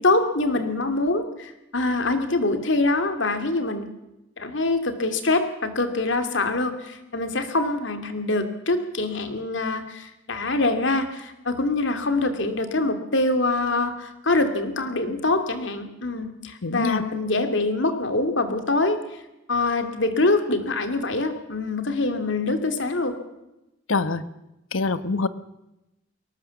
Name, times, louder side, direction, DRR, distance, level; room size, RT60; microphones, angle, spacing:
voice 1, 0.0-3.9 4.4-19.0 19.5-23.1, left 2 dB, 65° left, 8 dB, 2.7 m, -24 dB
voice 2, 16.6-17.0 23.9-24.2 24.7-25.3, left 3 dB, 85° left, 13 dB, 1.1 m, -24 dB
22.5 x 18.5 x 7.2 m, 0.93 s
head